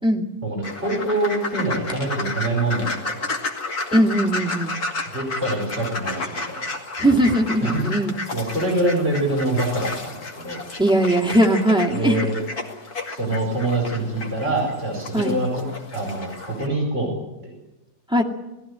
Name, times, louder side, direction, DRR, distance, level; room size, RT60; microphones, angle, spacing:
voice 1, 0.4-3.1 5.1-6.7 7.6-7.7 8.3-10.6 11.9-12.4 13.1-15.6 15.9-17.1 17.4-17.5, right 2 dB, 30° right, 0 dB, 5.2 m, -25 dB
sound 1, 0.6-16.7, left 2 dB, 50° left, 2.9 m, -32 dB
voice 2, 3.9-4.8 7.0-8.2 10.8-12.2 15.1-15.3 18.1-18.2, right 1 dB, 5° right, 1 dB, 2.1 m, -19 dB
19.0 x 15.5 x 9.9 m, 0.99 s
omnidirectional pair, 2.0 m